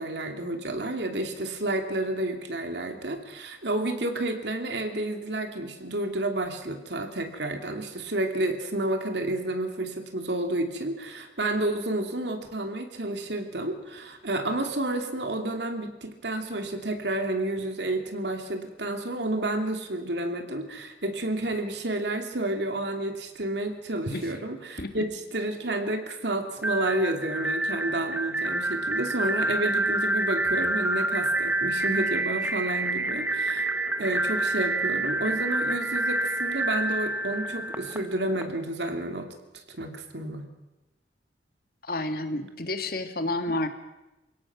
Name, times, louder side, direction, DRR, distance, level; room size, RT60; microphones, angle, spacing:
voice 1, 0.0-33.7 34.0-39.3 39.5-40.5 43.5-43.7, right 1 dB, 75° right, 5 dB, 2.7 m, -30 dB
sound 1, 26.6-38.4, right 2 dB, 10° right, 1.0 m, -28 dB
voice 2, 41.9-43.7, left 2 dB, 55° left, 8 dB, 1.8 m, -30 dB
28.0 x 17.0 x 6.1 m, 1.0 s
head